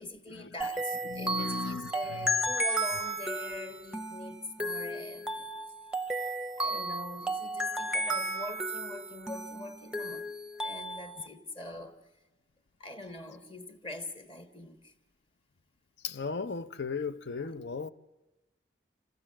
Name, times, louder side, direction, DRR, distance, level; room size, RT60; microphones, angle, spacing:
voice 1, 0.0-5.5 6.6-10.3 10.6-12.0 12.8-14.9, left 2 dB, 30° left, 1.2 m, -43 dB
sound 1, 0.6-11.3, right 1 dB, 5° right, 0.6 m, -34 dB
voice 2, 1.0-2.4 16.0-17.9, left 4 dB, 80° left, 0.6 m, -36 dB
27.0 x 15.5 x 7.4 m
head